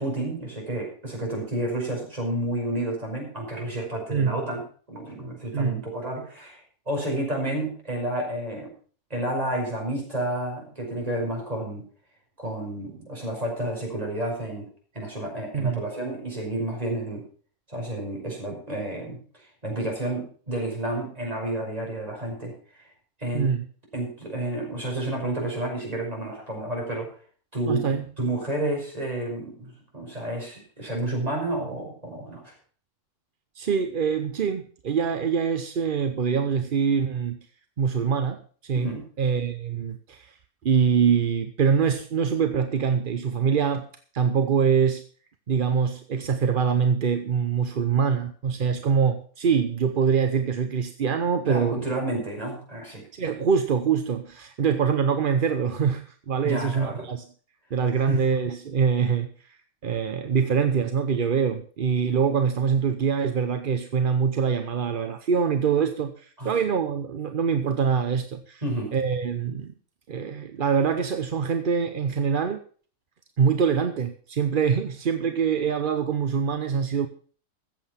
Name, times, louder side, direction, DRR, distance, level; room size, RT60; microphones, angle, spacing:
voice 1, 0.0-4.6 4.9-8.7 9.1-11.8 12.4-14.7 14.9-17.2 17.7-22.9 23.2-23.5 23.9-27.1 27.5-32.5 38.7-39.0 51.5-53.0 56.4-57.1 58.1-58.2 66.4-66.5 68.6-68.9, right 1 dB, 25° right, -1 dB, 5.5 m, -30 dB
voice 2, 5.5-5.8 15.5-15.8 23.3-23.6 27.7-28.1 33.6-37.4 37.8-40.3 40.6-43.9 44.1-45.0 45.5-51.8 53.1-57.2 57.7-59.6 59.8-68.6 68.9-69.7 70.1-72.6 73.4-77.1, right 6 dB, 45° right, 8 dB, 0.8 m, -24 dB
15.0 x 7.7 x 5.8 m, 0.43 s
omnidirectional pair, 1.5 m